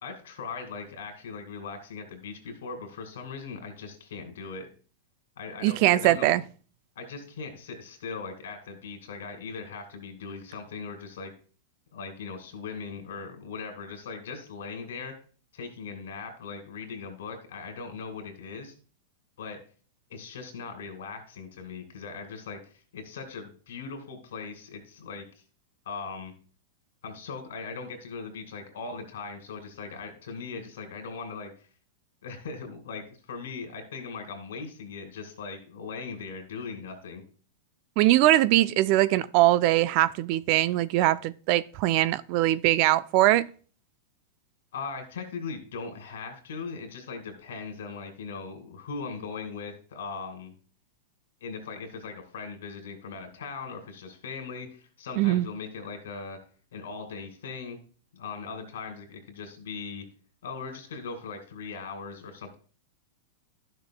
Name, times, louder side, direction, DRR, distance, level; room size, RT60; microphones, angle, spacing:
voice 1, 0.0-4.7 5.4-6.4 7.0-11.3 11.9-15.1 15.5-18.7 19.4-19.6 20.1-25.2 25.9-26.3 27.0-31.7 32.2-37.2 44.7-50.5 51.4-56.4 56.7-57.8 58.1-60.0 60.4-62.6, left 5 dB, 80° left, 2.2 m, -39 dB
voice 2, 5.6-6.4 38.0-43.5 55.2-55.5, right 15 dB, 50° right, 0.3 m, -22 dB
12.0 x 6.6 x 2.2 m
hypercardioid pair, 130°, 0 cm